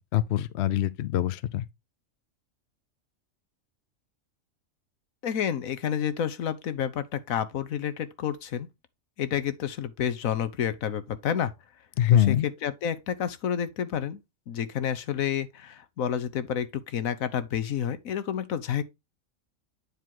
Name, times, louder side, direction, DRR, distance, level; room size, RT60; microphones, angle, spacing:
voice 1, 0.0-1.6 12.0-12.5, left 11 dB, 65° left, 0.8 m, -24 dB
voice 2, 5.2-8.7 9.2-11.5 12.1-14.2 14.5-18.8, left 9 dB, 85° left, 1.3 m, -29 dB
9.2 x 4.7 x 3.7 m
omnidirectional pair, 1.4 m